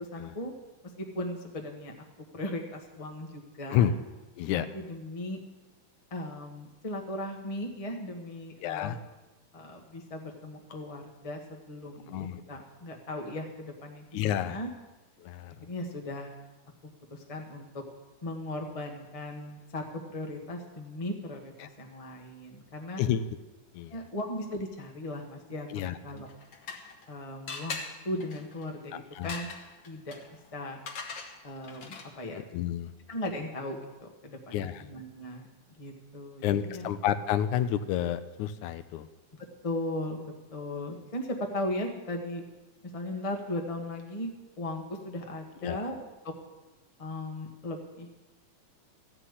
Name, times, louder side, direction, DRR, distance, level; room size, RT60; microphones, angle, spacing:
voice 1, 0.1-0.5 1.0-1.9 2.3-3.9 4.5-5.4 6.1-9.0 9.5-14.7 15.6-16.3 17.1-17.8 18.2-23.0 23.9-25.7 26.0-26.3 27.1-27.8 28.0-29.5 29.8-30.2 30.5-30.8 31.4-32.4 33.1-35.5 35.7-36.9 39.6-40.2 40.5-42.4 42.9-44.3 44.6-46.3 47.0-48.1, left 1 dB, 30° left, 2 dB, 0.6 m, -37 dB
voice 2, 8.6-9.0 12.1-12.4 14.1-14.6 15.2-15.7 21.6-21.7 23.0-23.3 23.7-24.0 25.7-26.0 28.9-29.3 32.4-32.9 34.5-34.8 36.4-39.1 45.6-45.9, left 10 dB, 80° left, 12 dB, 2.0 m, -30 dB
sound 1, 26.2-27.1 27.5-32.3, left 5 dB, 50° left, 1.5 m, -42 dB
14.5 x 5.9 x 9.7 m, 1.1 s
omnidirectional pair, 3.4 m